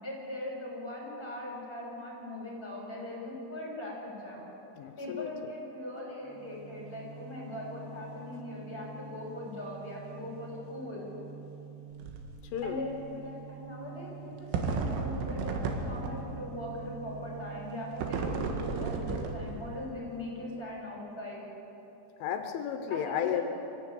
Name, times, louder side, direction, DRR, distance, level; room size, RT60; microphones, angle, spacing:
voice 1, 0.0-4.4 5.0-11.1 12.6-21.4 22.9-23.4, left 1 dB, 10° left, -2 dB, 6.4 m, -40 dB
voice 2, 4.8-5.3 12.5-12.8 22.2-23.4, left 9 dB, 85° left, 6 dB, 3.5 m, -33 dB
sound 1, 6.2-20.8, right 6 dB, 40° right, 4.1 m, -47 dB
sound 2, 11.9-12.3 12.6-12.7 14.5-16.4 18.0-19.8, right 4 dB, 85° right, 4.2 m, -33 dB
24.5 x 15.5 x 9.3 m, 2.9 s
omnidirectional pair, 5.5 m